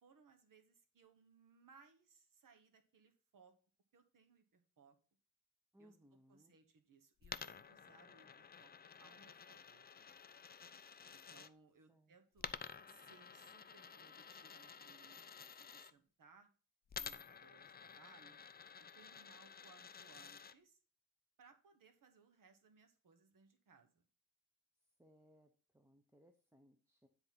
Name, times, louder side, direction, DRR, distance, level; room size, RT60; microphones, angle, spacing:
voice 1, 0.0-3.5 3.9-5.0 5.8-5.9 6.3-8.7 9.0-10.1 11.1-12.5 12.9-16.5 16.9-18.4 18.8-20.8 21.4-24.0, right 5 dB, 65° right, 7 dB, 1.3 m, -67 dB
voice 2, 5.7-6.6 11.9-12.2 24.8-27.1, equal, 5° right, 5 dB, 0.7 m, -68 dB
Coin (dropping), 7.2-11.5 12.4-15.9 16.9-20.5, left 6 dB, 30° left, 0.4 m, -52 dB
9.9 x 4.0 x 5.7 m, 0.38 s
wide cardioid pair, 140°, 35 cm